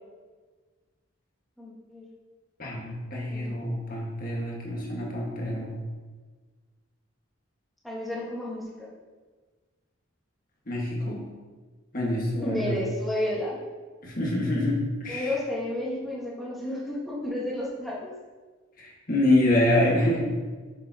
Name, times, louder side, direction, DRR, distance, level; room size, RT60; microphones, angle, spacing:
voice 1, 1.6-2.0 3.3-3.6 7.8-8.9 12.4-13.6 15.1-18.1, left 1 dB, ahead, -6 dB, 1.5 m, -31 dB
voice 2, 2.6-5.8 10.7-11.3 11.9-12.8 14.0-15.3 18.8-20.4, left 1 dB, 45° left, -3 dB, 1.6 m, -26 dB
6.9 x 6.5 x 2.9 m, 1.4 s
head